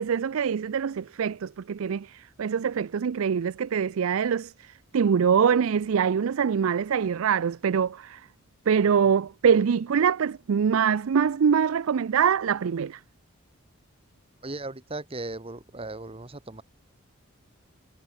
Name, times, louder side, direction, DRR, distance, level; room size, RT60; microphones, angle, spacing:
voice 1, 0.0-8.2 8.7-13.0, right 7 dB, 75° right, 0.4 m, -24 dB
voice 2, 14.4-16.6, right 2 dB, 25° right, 1.3 m, -37 dB
head